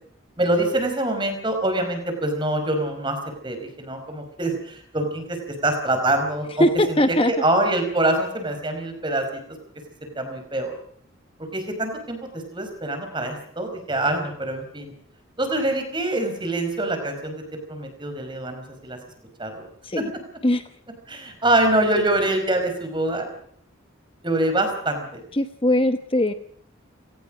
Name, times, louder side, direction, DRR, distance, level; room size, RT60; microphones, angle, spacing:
voice 1, 0.4-3.2 3.4-7.0 7.3-9.4 10.0-10.7 11.5-14.9 15.4-19.0 19.4-19.7 19.9-20.0 21.1-23.3 24.2-25.2, right 1 dB, 25° right, 6 dB, 4.9 m, -25 dB
voice 2, 6.6-7.4 19.8-20.1 20.4-20.6 25.3-26.3, left 1 dB, 25° left, 9 dB, 0.9 m, -20 dB
29.5 x 18.0 x 5.1 m, 0.63 s
head